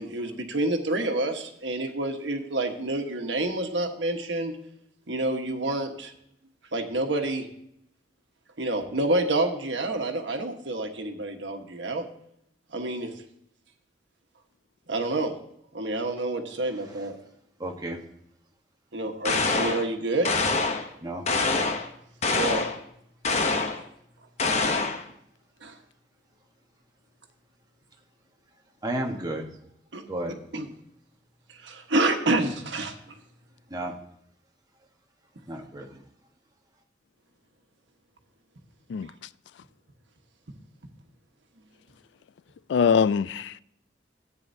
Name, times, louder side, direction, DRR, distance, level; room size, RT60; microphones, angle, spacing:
voice 1, 0.0-4.6 5.1-6.1 6.7-7.5 8.6-12.0 12.7-13.1 14.9-15.3 15.7-17.1 18.9-20.4 22.3-22.7 25.6-25.8 29.9-30.0 30.5-30.7 31.5-32.9, right 2 dB, 90° right, 1.3 m, -28 dB
voice 2, 17.6-18.0 21.0-21.2 28.8-29.5 30.1-30.3 33.7-33.9 35.5-36.0, right 1 dB, 20° right, 1.2 m, -32 dB
sound 1, 19.2-19.9 20.2-20.9 21.3-21.9 22.2-22.8 23.2-23.8 24.4-25.0, left 3 dB, 40° left, 0.8 m, -25 dB
voice 3, 42.7-43.6, left 6 dB, 75° left, 0.3 m, -23 dB
13.5 x 8.9 x 2.7 m
head